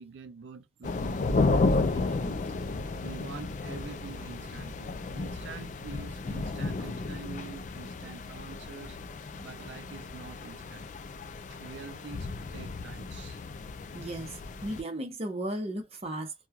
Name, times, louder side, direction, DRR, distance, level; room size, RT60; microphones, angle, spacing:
voice 1, 0.0-10.9 11.5-13.4, right 5 dB, 75° right, 0.4 m, -46 dB
sound 1, 0.8-14.8, left 3 dB, 40° left, 0.3 m, -33 dB
voice 2, 13.9-16.3, right 1 dB, 35° right, 0.8 m, -35 dB
3.0 x 2.2 x 2.3 m
head